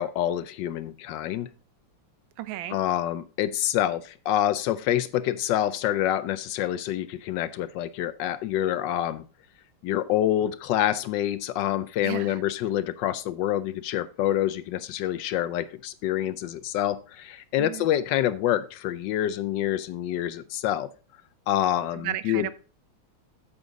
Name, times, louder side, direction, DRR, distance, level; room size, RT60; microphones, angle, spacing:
voice 1, 0.0-1.5 2.7-9.2 9.8-20.9 21.5-22.5, left 12 dB, 75° left, 13 dB, 1.1 m, -27 dB
voice 2, 2.4-2.8 12.0-12.4 17.6-17.9 22.0-22.5, right 13 dB, 75° right, 14 dB, 1.5 m, -33 dB
8.7 x 7.2 x 3.8 m, 0.35 s
omnidirectional pair, 2.3 m